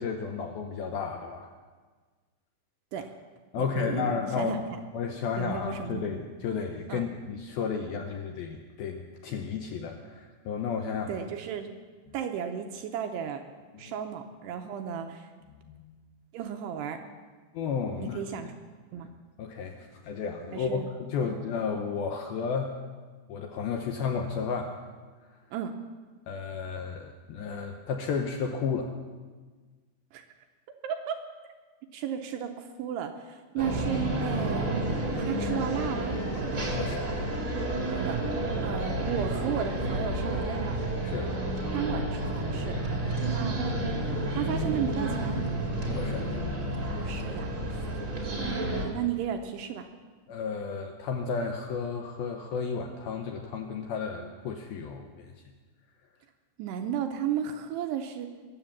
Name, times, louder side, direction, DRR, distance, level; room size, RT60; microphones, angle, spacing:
voice 1, 0.0-1.5 3.5-4.6 4.9-11.2 13.8-14.0 15.7-15.9 17.5-18.2 19.0-19.1 19.4-22.7 23.3-24.8 26.3-28.9 33.6-33.7 36.8-37.1 41.0-41.3 45.9-46.3 50.3-55.3, left 5 dB, 75° left, 3 dB, 2.2 m, -33 dB
voice 2, 3.6-4.6 5.4-6.1 6.9-7.1 11.1-11.8 12.1-13.4 13.8-15.3 16.3-17.0 18.0-18.5 18.9-19.1 20.5-20.9 21.2-21.3 25.5-25.7 30.1-30.3 30.8-31.2 31.9-34.7 35.2-36.2 37.9-38.2 38.6-40.8 41.7-42.8 43.3-43.8 44.3-45.4 47.0-47.5 48.3-49.9 56.6-58.3, right 8 dB, 80° right, 5 dB, 2.6 m, -34 dB
sound 1, 33.6-48.8, right 1 dB, 40° right, 1.1 m, -30 dB
21.5 x 7.8 x 7.2 m, 1.4 s
omnidirectional pair, 5.3 m